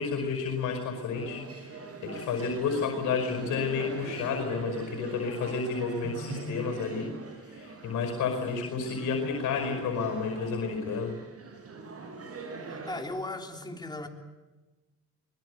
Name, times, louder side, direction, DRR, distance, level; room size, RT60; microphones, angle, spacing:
voice 1, 0.0-7.1 7.4-11.1, left 5 dB, 80° left, 4 dB, 5.3 m, -31 dB
sound 1, 1.1-13.0, right 3 dB, 50° right, 6.9 m, -42 dB
voice 2, 12.7-14.1, left 2 dB, 15° left, 3 dB, 3.5 m, -37 dB
24.5 x 21.5 x 8.2 m, 1.2 s
cardioid pair, 90°, 30 cm